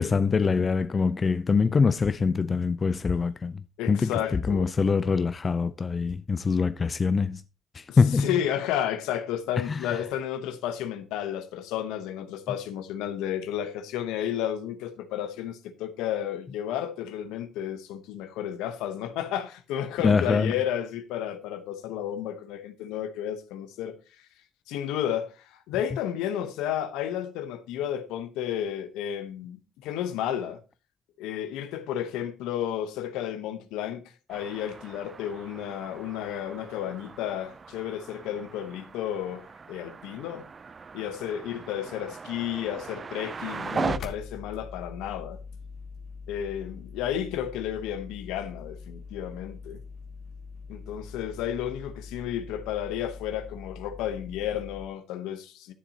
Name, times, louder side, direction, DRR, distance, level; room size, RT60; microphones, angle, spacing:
voice 1, 0.0-3.6 3.9-7.4 7.7-8.4 9.7-9.8 20.0-20.5, left 5 dB, 35° left, 0.4 m, -24 dB
voice 2, 3.8-4.7 7.9-24.0 24.7-30.6 31.2-34.0 34.3-40.4 40.9-45.4 46.3-49.8 50.7-55.7, left 10 dB, 80° left, 0.9 m, -32 dB
sound 1, 34.3-44.0, right 5 dB, 35° right, 0.4 m, -38 dB
sound 2, 43.8-54.9, left 4 dB, 60° left, 1.2 m, -43 dB
11.0 x 7.1 x 2.8 m
supercardioid pair, 60°, 0 cm